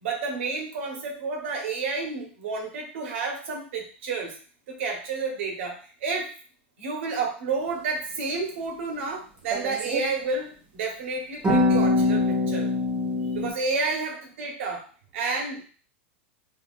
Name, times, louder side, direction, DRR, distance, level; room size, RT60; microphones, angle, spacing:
voice 1, 0.0-4.3 4.7-6.3 6.8-12.7 13.3-14.8 15.1-15.6, right 4 dB, 70° right, 1 dB, 1.3 m, -30 dB
sound 1, 9.5-10.1 11.4-13.5, left 2 dB, 15° right, 0.9 m, -23 dB
3.8 x 3.1 x 2.6 m, 0.41 s
hypercardioid pair, 125°, 7 cm